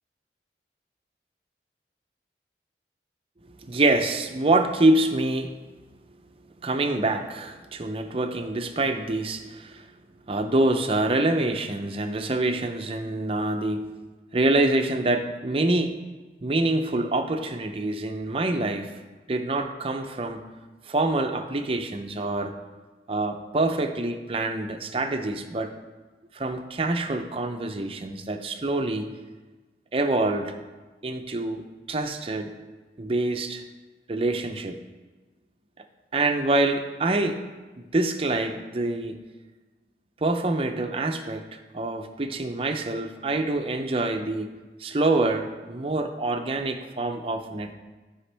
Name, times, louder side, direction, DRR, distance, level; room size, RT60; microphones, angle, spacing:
voice 1, 3.6-5.6 6.6-9.9 10.3-13.9 14.3-16.0 16.4-19.0 19.3-20.4 20.9-22.5 23.1-25.7 26.3-29.1 29.9-30.5 31.0-32.5 33.0-33.6 34.1-34.8 36.1-37.4 37.8-39.2 40.2-44.5 44.8-47.7, right 2 dB, 30° right, 6 dB, 0.6 m, -26 dB
13.0 x 5.1 x 3.4 m, 1.2 s
head